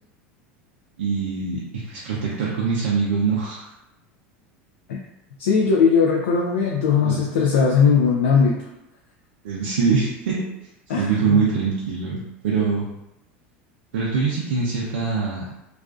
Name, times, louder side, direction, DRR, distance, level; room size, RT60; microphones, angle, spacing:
voice 1, 1.0-3.7 7.0-7.2 9.4-10.4 11.0-12.9 13.9-15.4, right 5 dB, 85° right, -5 dB, 0.5 m, -23 dB
voice 2, 5.4-8.6 10.9-11.4, left 6 dB, 85° left, -2 dB, 0.3 m, -19 dB
2.4 x 2.3 x 2.3 m, 0.89 s
hypercardioid pair, 100°, 6 cm